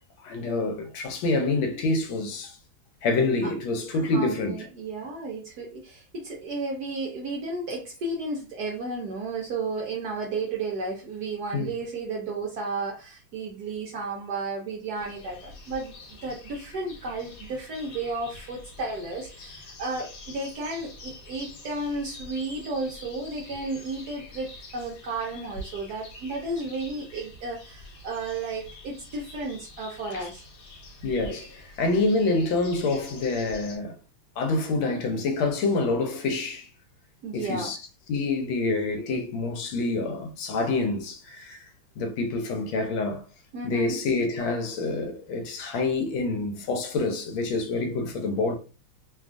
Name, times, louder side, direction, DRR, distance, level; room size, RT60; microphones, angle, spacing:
voice 1, 0.2-2.6 3.0-4.6 11.5-11.7 30.1-30.3 31.0-34.0 34.4-36.7 37.3-37.8 38.1-41.6 42.0-43.2 43.6-48.5, left 3 dB, 80° left, 1.4 m, -27 dB
voice 2, 3.9-30.4 37.2-37.7 43.5-44.0, right 3 dB, 70° right, 0.9 m, -33 dB
sound 1, 14.9-33.8, left 2 dB, 65° left, 1.2 m, -46 dB
3.2 x 2.3 x 2.4 m
omnidirectional pair, 2.2 m